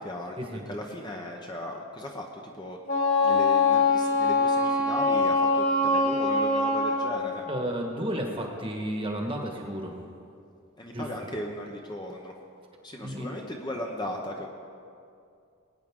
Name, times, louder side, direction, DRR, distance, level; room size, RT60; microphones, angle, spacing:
voice 1, 0.0-2.8 3.2-7.4 10.8-12.3 12.8-14.5, left 1 dB, 20° left, 1 dB, 0.8 m, -37 dB
Wind instrument woodwind instrument, 2.8-7.2, left 3 dB, 65° left, 3.3 m, -23 dB
voice 2, 7.5-10.0 10.9-11.0 13.0-13.4, right 1 dB, 25° right, 1 dB, 1.3 m, -32 dB
20.0 x 9.2 x 3.7 m, 2.4 s
head